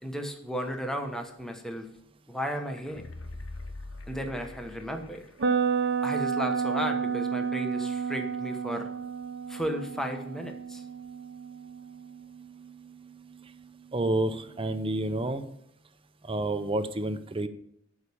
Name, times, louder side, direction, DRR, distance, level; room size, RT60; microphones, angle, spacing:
voice 1, 0.0-1.9 2.3-3.0 4.1-5.2 6.0-8.9 9.5-10.8, equal, ahead, 4 dB, 1.1 m, -34 dB
sound 1, 2.6-5.5 5.8-5.9, left 2 dB, 85° left, 1.0 m, -43 dB
sound 2, 5.4-13.3, right 6 dB, 60° right, 0.8 m, -31 dB
voice 2, 13.9-15.4 16.3-17.5, right 2 dB, 25° right, 10 dB, 0.7 m, -29 dB
11.0 x 4.9 x 7.0 m, 0.73 s
head